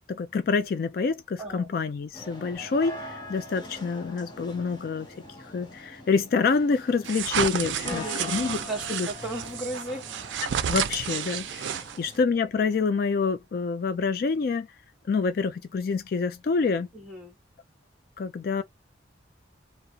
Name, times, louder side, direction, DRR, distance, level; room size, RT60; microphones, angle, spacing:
voice 1, 0.1-5.1 5.4-8.6 8.9-9.1 10.7-14.7 15.1-16.9 18.2-18.6, left 4 dB, 55° left, 0.3 m, -27 dB
voice 2, 1.4-1.7 7.8-10.1 16.9-17.4, right 1 dB, 5° right, 1.1 m, -36 dB
sound 1, 2.1-12.2, left 2 dB, 25° left, 0.8 m, -44 dB
sound 2, 2.5-13.5, left 1 dB, 80° left, 1.1 m, -56 dB
sound 3, 7.0-12.2, right 9 dB, 80° right, 0.4 m, -31 dB
2.2 x 2.1 x 2.7 m
head